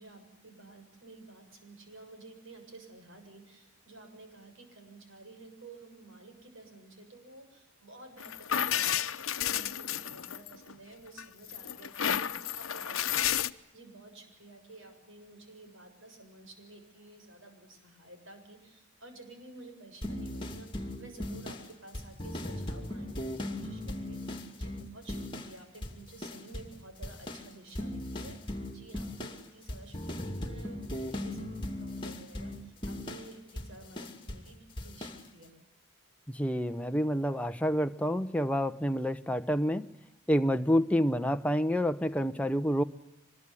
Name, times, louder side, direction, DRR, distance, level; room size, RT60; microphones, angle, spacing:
voice 1, 0.0-35.5, right 2 dB, 65° right, 5 dB, 7.4 m, -52 dB
sound 1, 8.2-10.7 11.2-13.5, left 10 dB, 75° left, 0.9 m, -31 dB
sound 2, 20.0-25.6 25.8-26.8 27.0-34.5 34.8-35.2, left 1 dB, 25° left, 2.5 m, -38 dB
voice 2, 36.3-39.9 40.3-42.8, equal, 5° left, 8 dB, 0.9 m, -28 dB
25.5 x 21.5 x 9.8 m, 0.84 s
head